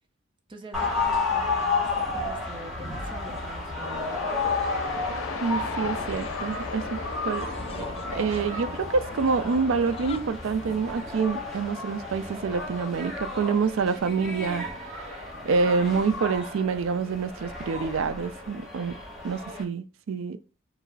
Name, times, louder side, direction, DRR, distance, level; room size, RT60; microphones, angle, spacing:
voice 1, 0.5-4.4, right 1 dB, 25° right, 0.6 m, -44 dB
sound 1, 0.7-11.1, left 2 dB, 25° left, 0.3 m, -42 dB
sound 2, 0.7-19.6, left 3 dB, ahead, 0.9 m, -32 dB
sound 3, 3.8-11.3, left 5 dB, 90° left, 0.6 m, -39 dB
voice 2, 5.4-7.5 8.1-15.2 15.4-18.9 19.2-20.4, right 5 dB, 70° right, 0.4 m, -27 dB
4.6 x 2.0 x 4.6 m
head